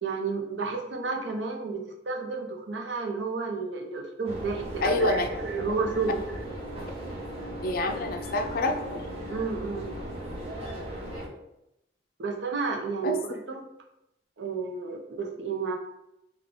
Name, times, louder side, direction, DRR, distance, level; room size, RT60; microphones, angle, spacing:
voice 1, 0.0-6.2 9.3-9.9 12.2-13.6 14.4-15.8, right 4 dB, 75° right, 2 dB, 0.6 m, -31 dB
sound 1, 4.2-11.3, right 1 dB, 35° right, 0.8 m, -37 dB
voice 2, 4.8-5.3 7.6-9.0 13.0-13.2, left 2 dB, 50° left, 6 dB, 0.4 m, -27 dB
3.7 x 2.3 x 3.6 m, 0.85 s
head